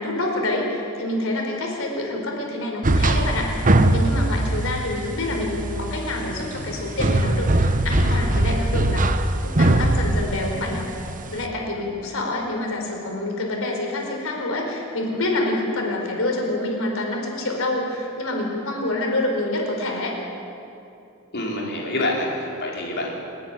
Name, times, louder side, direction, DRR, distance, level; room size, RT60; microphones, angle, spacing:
voice 1, 0.0-3.5 3.9-9.1 9.4-10.9 11.3-20.2, left 2 dB, 70° left, 0 dB, 4.7 m, -27 dB
sound 1, 2.8-11.5, right 1 dB, 40° right, 1.0 m, -21 dB
voice 2, 21.3-23.1, left 1 dB, 55° left, -2 dB, 4.8 m, -27 dB
29.5 x 10.5 x 10.0 m, 2.7 s
head